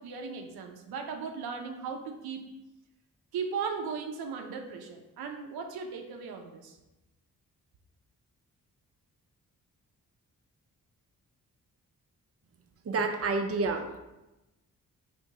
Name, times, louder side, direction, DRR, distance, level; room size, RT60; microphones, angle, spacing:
voice 1, 0.0-2.4 3.3-6.8, right 5 dB, 85° right, 4 dB, 0.6 m, -37 dB
voice 2, 12.8-14.0, right 3 dB, 40° right, 5 dB, 0.6 m, -29 dB
4.5 x 3.4 x 2.8 m, 0.99 s
cardioid pair, 50°, 36 cm